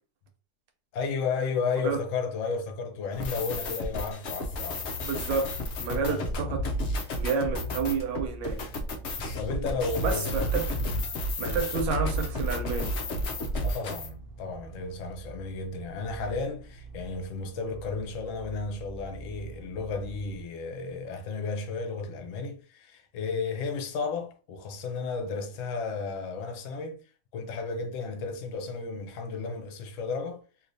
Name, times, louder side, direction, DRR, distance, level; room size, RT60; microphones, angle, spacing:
voice 1, 0.9-4.9 5.9-6.6 9.4-10.4 10.8-11.0 11.4-11.6 13.6-27.0 27.3-30.4, left 4 dB, 60° left, 0.9 m, -33 dB
sound 1, 3.1-14.1, left 1 dB, 85° left, 0.6 m, -32 dB
voice 2, 5.0-5.5 5.8-6.7 7.2-8.6 10.0-10.7 11.4-13.0, right 5 dB, 90° right, 1.4 m, -30 dB
sound 2, 7.7-20.4, right 4 dB, 65° right, 0.6 m, -46 dB
3.3 x 2.7 x 2.6 m
omnidirectional pair, 1.9 m